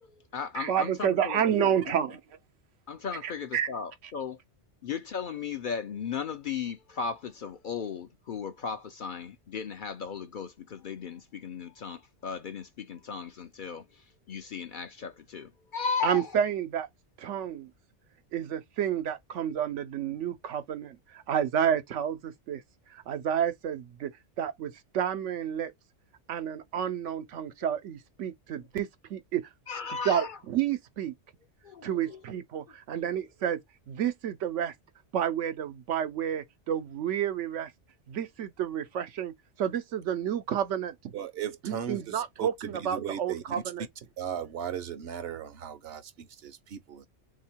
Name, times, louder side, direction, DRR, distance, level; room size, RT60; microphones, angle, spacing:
voice 1, 0.0-2.0 2.9-4.4 4.8-16.3 29.7-30.4 31.6-32.2 32.9-33.3, left 6 dB, 60° left, 0.6 m, -36 dB
voice 2, 0.5-2.2 3.2-3.7 16.0-16.9 17.2-17.7 18.3-22.6 22.9-25.7 26.3-29.5 30.0-31.1 31.8-33.6 33.9-34.7 35.1-37.7 38.1-40.9 41.6-43.9, right 9 dB, 85° right, 1.0 m, -30 dB
voice 3, 41.1-42.5 42.9-43.4 44.2-47.1, right 9 dB, 65° right, 0.8 m, -37 dB
3.5 x 2.7 x 4.4 m
omnidirectional pair, 1.2 m